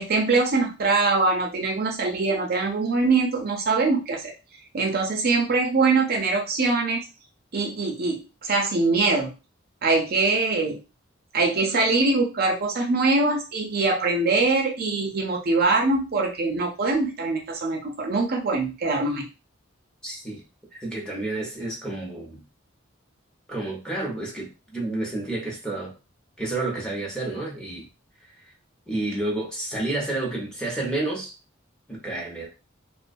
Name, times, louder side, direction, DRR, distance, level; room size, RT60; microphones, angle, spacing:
voice 1, 0.0-4.3 4.7-7.0 7.5-9.3 9.8-10.8 11.3-19.3, right 3 dB, 50° right, 0.5 m, -23 dB
voice 2, 20.0-20.4 20.7-22.4 23.5-25.9 26.4-27.9 28.9-31.3 31.9-32.5, right 2 dB, 5° left, 0.8 m, -30 dB
2.3 x 2.2 x 2.5 m
head